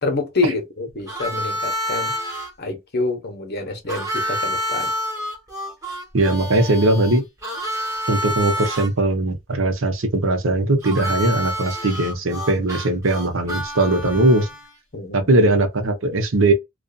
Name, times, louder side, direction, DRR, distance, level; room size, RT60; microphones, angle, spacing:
voice 1, 0.0-2.2 2.6-4.9 14.9-15.3, left 3 dB, 50° left, 0.9 m, -27 dB
Harmonica, 1.1-2.5 3.9-8.9 10.8-14.8, equal, 15° right, 1.1 m, -28 dB
voice 2, 6.1-7.2 8.1-14.5 15.1-16.5, right 2 dB, 70° right, 0.8 m, -19 dB
2.6 x 2.4 x 2.3 m
head